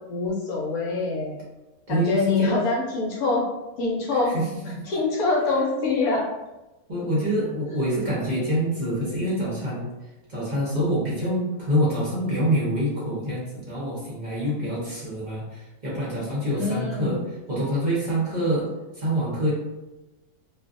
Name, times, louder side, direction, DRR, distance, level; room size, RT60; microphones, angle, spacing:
voice 1, 0.0-1.4 1.9-3.4 3.8-4.3 4.9-6.3 16.5-17.2, left 3 dB, 70° left, -3 dB, 1.1 m, -25 dB
voice 2, 1.9-2.5 4.3-4.5 4.7-4.8 6.9-9.9 10.3-18.7 18.9-19.5, equal, 40° right, -7 dB, 0.7 m, -26 dB
2.6 x 2.3 x 2.5 m, 1.0 s
omnidirectional pair, 1.7 m